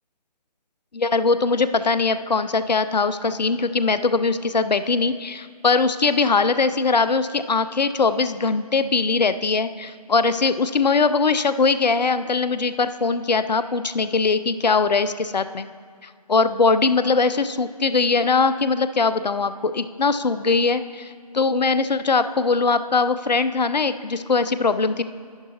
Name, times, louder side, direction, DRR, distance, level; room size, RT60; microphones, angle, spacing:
voice 1, 0.9-15.7 16.0-25.0, left 4 dB, 85° left, 13 dB, 0.5 m, -21 dB
11.0 x 9.1 x 2.9 m, 2.1 s
figure-of-eight pair, 150°, 21 cm